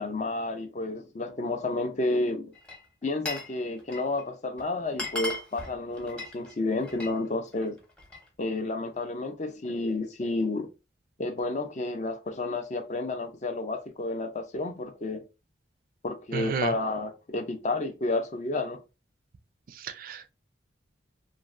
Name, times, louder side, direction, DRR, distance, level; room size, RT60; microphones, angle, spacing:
voice 1, 0.0-2.5 3.0-7.8 8.4-10.7 11.2-15.2 16.0-18.8, left 2 dB, 40° left, 0.4 m, -31 dB
Glass, 2.5-3.5 3.8-4.2 4.6-4.7 4.9-7.2 7.5-8.3, left 2 dB, 5° left, 0.7 m, -37 dB
voice 2, 16.3-16.7 19.7-20.3, right 5 dB, 45° right, 0.3 m, -32 dB
3.0 x 2.4 x 2.4 m
head